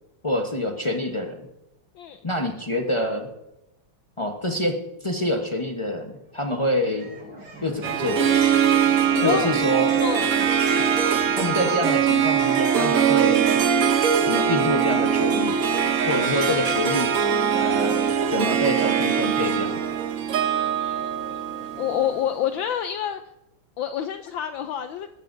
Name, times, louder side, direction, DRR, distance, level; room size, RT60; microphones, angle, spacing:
voice 1, 0.2-1.4 2.2-3.3 4.2-7.1 7.6-8.2 9.2-9.9 11.4-13.6 14.3-15.6 16.1-17.1 17.5-18.0 18.3-19.8, left 1 dB, 50° left, 2 dB, 0.3 m, -26 dB
sound 1, 6.4-21.0, right 3 dB, 85° right, 5.4 m, -39 dB
Harp, 7.8-22.3, right 8 dB, 60° right, 0.9 m, -22 dB
voice 2, 9.1-9.6 10.0-10.5 20.4-23.2 23.8-25.1, left 9 dB, 75° left, 9 dB, 1.2 m, -28 dB
20.0 x 12.5 x 2.6 m, 0.89 s
omnidirectional pair, 2.4 m